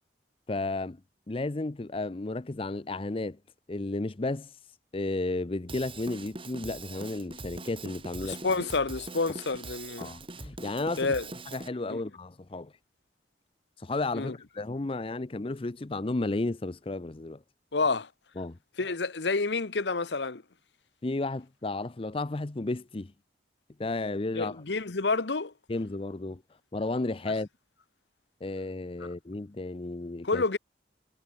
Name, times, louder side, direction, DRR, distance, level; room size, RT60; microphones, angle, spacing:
voice 1, 0.5-1.0 1.3-3.4 3.7-4.5 4.9-8.4 10.0-11.1 11.5-12.7 13.8-17.4 18.4-18.6 21.0-23.1 23.8-24.6 25.7-26.4 26.7-27.5 28.4-30.4, left 2 dB, 30° left, 0.6 m, -33 dB
Drum kit / Drum, 5.7-11.7, right 2 dB, 30° right, 5.9 m, -43 dB
voice 2, 8.2-10.1 11.0-11.3 11.9-12.0 14.1-14.3 17.7-18.1 18.8-20.4 24.3-25.5 30.2-30.6, left 3 dB, 80° left, 1.1 m, -29 dB
head